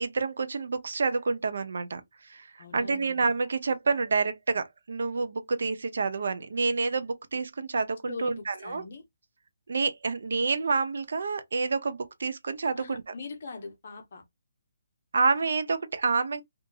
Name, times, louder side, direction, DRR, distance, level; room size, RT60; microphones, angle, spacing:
voice 1, 0.0-8.8 9.7-13.1 15.1-16.4, right 4 dB, 60° right, 0.5 m, -28 dB
voice 2, 2.6-3.2 8.1-9.0 12.8-14.2, left 4 dB, 40° left, 0.7 m, -41 dB
2.6 x 2.5 x 2.3 m
hypercardioid pair, 180°, 0 cm